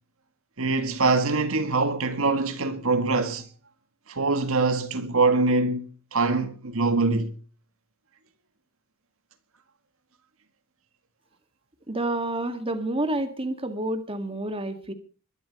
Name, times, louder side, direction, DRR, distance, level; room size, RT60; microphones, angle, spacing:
voice 1, 0.6-3.5 4.1-7.3, right 3 dB, 65° right, 1.9 m, -24 dB
voice 2, 11.9-14.9, right 1 dB, 25° right, 2.0 m, -29 dB
22.0 x 12.0 x 5.4 m
head